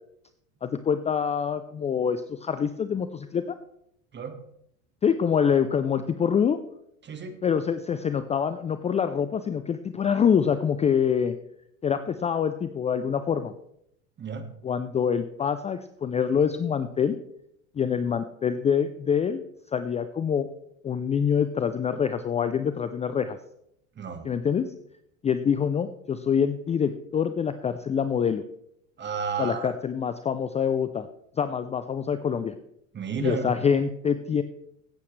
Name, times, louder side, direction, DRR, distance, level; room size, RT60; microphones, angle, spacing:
voice 1, 0.6-3.4 5.0-6.6 7.4-11.4 11.8-13.5 14.6-17.2 17.8-19.4 19.7-20.5 20.8-23.4 24.2-24.7 25.2-28.4 29.4-31.1 31.4-32.5 33.2-34.4, left 7 dB, 15° left, 11 dB, 0.5 m, -25 dB
voice 2, 7.0-7.4 14.2-14.5 24.0-24.3 29.0-29.7 32.9-33.5, right 6 dB, 25° right, 7 dB, 2.0 m, -32 dB
16.0 x 8.4 x 3.3 m, 0.74 s
hypercardioid pair, 85°, 40 cm